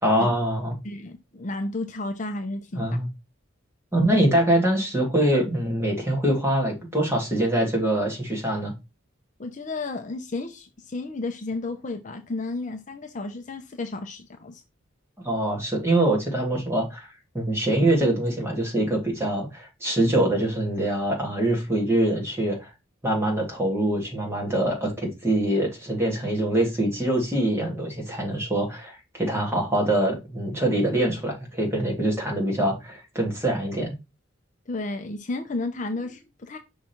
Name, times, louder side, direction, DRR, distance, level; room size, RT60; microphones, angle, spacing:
voice 1, 0.0-0.8 2.8-3.1 3.9-8.7 15.2-17.1 17.3-22.7 23.0-34.0, right 1 dB, 15° right, 2.4 m, -24 dB
voice 2, 0.8-3.0 9.4-14.6 34.7-36.6, left 2 dB, 40° left, 0.7 m, -32 dB
5.9 x 3.7 x 4.4 m
head